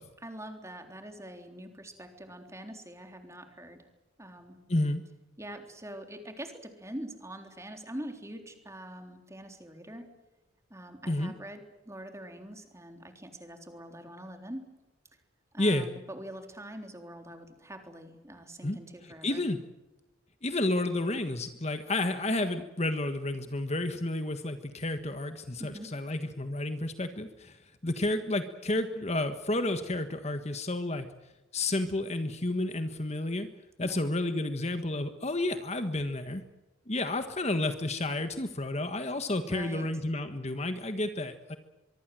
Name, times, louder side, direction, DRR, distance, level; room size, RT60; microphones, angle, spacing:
voice 1, 0.2-3.9 4.2-4.6 5.4-10.1 10.7-14.7 15.5-19.4 25.6-25.9 33.8-34.0 39.5-39.9, right 1 dB, 15° right, 5 dB, 3.6 m, -44 dB
voice 2, 4.7-5.0 11.1-11.3 15.6-15.9 18.6-18.8 19.2-19.6 20.4-31.1 31.5-33.5 33.8-36.4 36.9-41.6, left 2 dB, 35° left, 8 dB, 1.5 m, -31 dB
24.0 x 24.0 x 7.7 m, 1.1 s
head